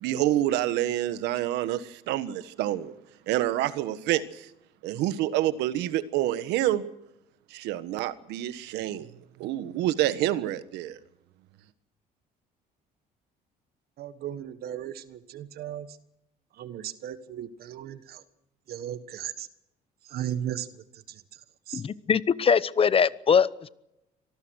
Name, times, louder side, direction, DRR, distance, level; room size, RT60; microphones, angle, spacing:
voice 1, 0.0-3.0 3.3-4.5 4.8-6.9 7.5-9.1 9.4-11.0, right 13 dB, 90° right, 13 dB, 1.4 m, -27 dB
voice 2, 14.0-15.9 16.6-18.2 18.7-19.5 20.1-20.7 21.7-21.8, right 10 dB, 65° right, 13 dB, 1.4 m, -36 dB
voice 3, 21.7-23.7, left 6 dB, 35° left, 17 dB, 0.9 m, -22 dB
25.0 x 19.0 x 6.4 m, 0.83 s
cardioid pair, 110°, 17 cm